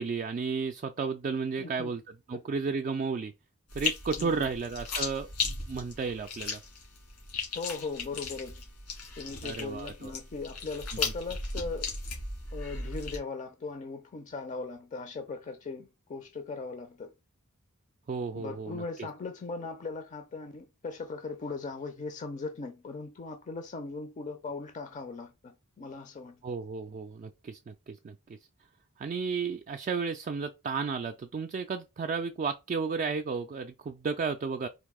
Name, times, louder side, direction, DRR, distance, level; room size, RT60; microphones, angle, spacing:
voice 1, 0.0-3.3 3.7-6.6 9.4-10.1 18.1-19.1 26.4-28.4 29.0-34.7, right 5 dB, 35° right, 0.3 m, -33 dB
voice 2, 1.6-1.9 2.3-2.4 4.2-4.5 7.5-8.6 9.2-12.0 12.5-17.1 18.4-26.4, left 4 dB, 35° left, 0.4 m, -39 dB
sound 1, 3.7-13.2, left 4 dB, 90° left, 1.9 m, -36 dB
4.0 x 2.6 x 3.6 m
head